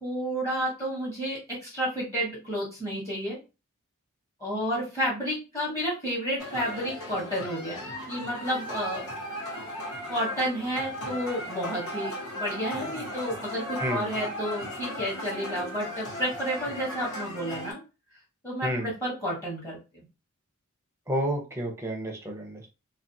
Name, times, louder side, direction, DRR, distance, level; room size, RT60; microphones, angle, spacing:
voice 1, 0.0-3.4 4.4-9.1 10.1-17.8 18.4-19.8, equal, 15° left, -6 dB, 0.9 m, -31 dB
sound 1, 6.4-17.7, equal, 70° left, 0.9 m, -36 dB
voice 2, 21.1-22.7, right 1 dB, 10° right, 1 dB, 0.5 m, -30 dB
2.4 x 2.2 x 2.6 m, 0.29 s
head